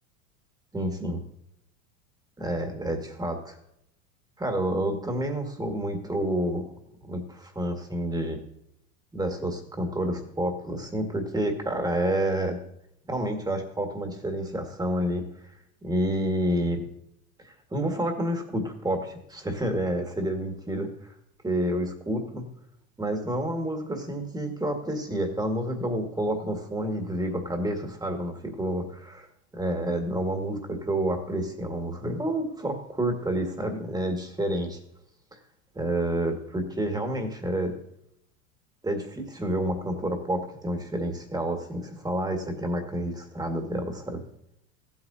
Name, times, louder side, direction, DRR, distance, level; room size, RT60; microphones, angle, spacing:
voice 1, 0.7-1.2 2.4-3.6 4.4-6.6 7.0-8.4 9.1-12.6 13.1-15.2 15.8-16.8 17.4-21.1 21.4-22.4 23.0-29.3 29.5-34.8 35.3-35.4 35.7-37.8 38.8-44.2, right 1 dB, 10° right, 4 dB, 2.0 m, -29 dB
15.0 x 8.8 x 2.8 m, 0.75 s
hypercardioid pair, 100°, 42 cm